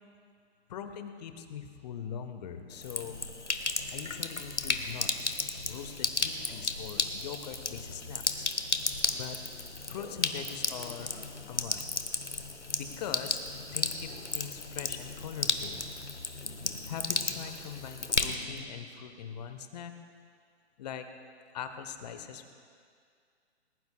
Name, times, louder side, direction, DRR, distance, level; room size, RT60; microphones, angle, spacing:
voice 1, 0.7-3.2 3.9-5.4 5.7-8.5 9.1-9.4 9.9-11.1 11.5-11.8 12.8-13.4 13.7-15.9 16.9-19.9 20.8-21.1 21.5-22.5, left 8 dB, 35° left, 8 dB, 1.1 m, -42 dB
Sink (filling or washing), 2.7-18.6, left 3 dB, 90° left, 1.1 m, -34 dB
20.0 x 20.0 x 2.3 m, 2.2 s
figure-of-eight pair, 130°, 34 cm